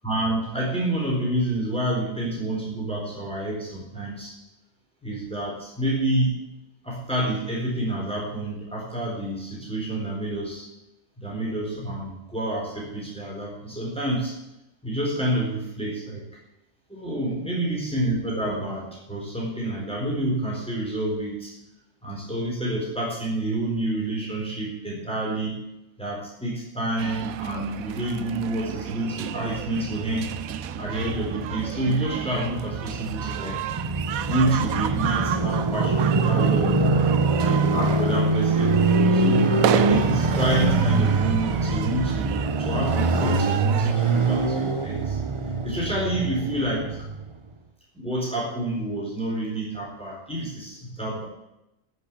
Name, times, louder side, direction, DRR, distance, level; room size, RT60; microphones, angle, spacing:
voice 1, 0.0-4.4 5.0-6.3 6.8-10.7 11.2-14.4 14.8-16.2 16.9-21.5 22.0-25.6 26.0-30.3 30.8-33.6 34.2-36.7 37.4-45.2 45.6-47.1 47.9-51.2, right 1 dB, 5° left, -4 dB, 4.1 m, -28 dB
sound 1, 27.0-43.9, right 10 dB, 90° right, 1.1 m, -32 dB
Motorcycle, 29.2-47.3, right 3 dB, 30° right, 0.7 m, -24 dB
13.5 x 6.6 x 8.5 m, 0.89 s
omnidirectional pair, 1.4 m